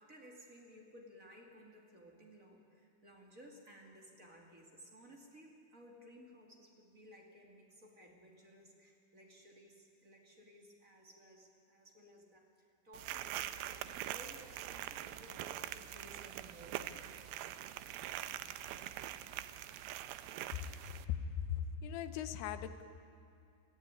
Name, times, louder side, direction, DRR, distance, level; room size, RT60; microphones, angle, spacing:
voice 1, 0.0-17.0, equal, 30° right, -1 dB, 1.6 m, -58 dB
sound 1, 12.9-21.1, right 12 dB, 80° right, 2.3 m, -44 dB
voice 2, 20.8-22.8, left 8 dB, 75° left, 11 dB, 2.7 m, -39 dB
23.0 x 14.5 x 9.7 m, 2.5 s
omnidirectional pair, 4.9 m